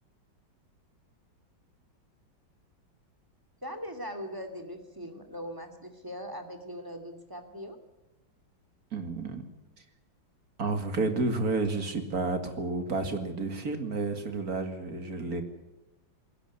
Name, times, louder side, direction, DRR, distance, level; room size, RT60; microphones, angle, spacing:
voice 1, 3.6-7.8, equal, 10° right, 7 dB, 2.5 m, -40 dB
voice 2, 8.9-9.4 10.6-15.4, right 3 dB, 50° right, 7 dB, 2.7 m, -31 dB
20.0 x 17.0 x 9.6 m, 1.0 s
omnidirectional pair, 2.1 m